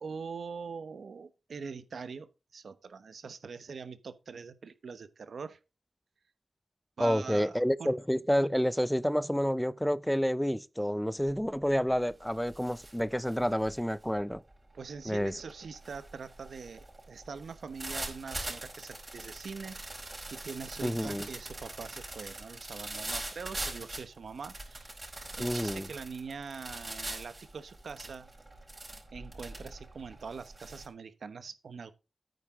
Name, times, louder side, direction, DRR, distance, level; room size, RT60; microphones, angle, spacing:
voice 1, 0.0-5.6 7.0-8.0 14.7-19.8 20.3-24.9 25.3-28.3 29.1-31.9, right 5 dB, 85° right, 1.0 m, -43 dB
voice 2, 7.0-14.4 15.1-15.3 20.8-21.3 25.4-25.9, equal, 5° left, 0.6 m, -29 dB
sound 1, 11.2-11.6 11.9-30.9, right 2 dB, 35° right, 4.8 m, -43 dB
9.4 x 9.3 x 3.7 m
cardioid pair, 45°, 0 cm